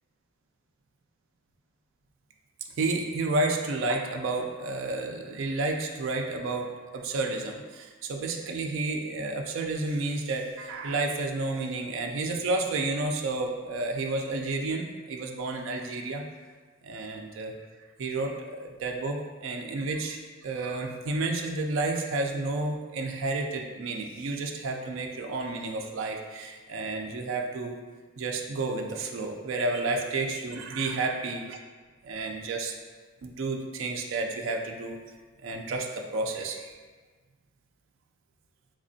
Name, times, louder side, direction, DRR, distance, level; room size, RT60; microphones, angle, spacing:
voice 1, 2.8-16.2 16.8-17.5 18.0-27.8 28.2-31.6 32.0-32.7 33.2-35.0 35.4-36.7, right 2 dB, 60° right, 2 dB, 0.3 m, -31 dB
3.5 x 3.2 x 2.6 m, 1.4 s
head